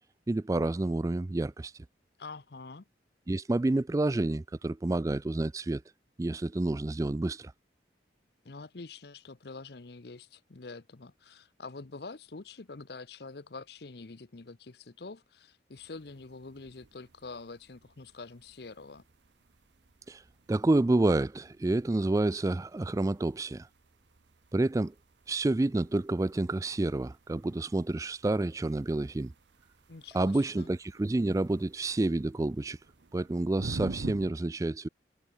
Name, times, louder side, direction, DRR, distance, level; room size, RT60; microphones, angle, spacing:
voice 1, 0.3-1.7 3.3-5.8 6.2-7.5 20.1-20.2 20.5-23.7 24.5-24.9 25.3-29.3 30.1-32.8 33.1-34.9, right 2 dB, 15° right, 0.3 m, -29 dB
voice 2, 2.2-2.8 8.4-19.0 29.9-30.7, left 3 dB, 60° left, 0.8 m, -46 dB
sound 1, 15.7-34.3, right 2 dB, 75° right, 0.8 m, -48 dB
head